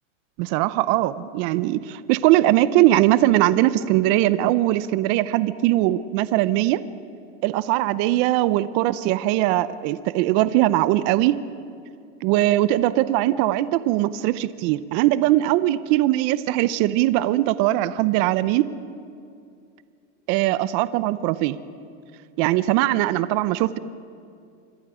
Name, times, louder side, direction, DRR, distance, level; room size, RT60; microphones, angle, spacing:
voice 1, 0.4-6.8 7.4-11.4 12.2-18.7 20.3-21.6 22.4-23.8, right 15 dB, 50° right, 15 dB, 0.8 m, -20 dB
27.0 x 22.0 x 5.0 m, 2.4 s
supercardioid pair, 130°, 39 cm